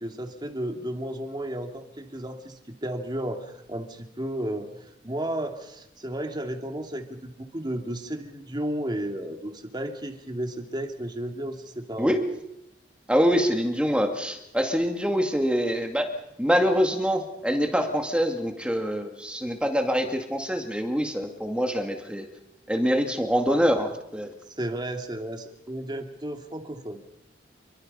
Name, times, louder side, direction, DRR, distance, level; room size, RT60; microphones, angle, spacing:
voice 1, 0.0-12.2 24.5-27.0, right 1 dB, 25° right, 4 dB, 2.8 m, -33 dB
voice 2, 12.0-12.3 13.1-16.1 16.4-22.3 22.7-24.3, equal, 5° right, 4 dB, 2.2 m, -25 dB
28.5 x 24.0 x 5.6 m, 0.85 s
head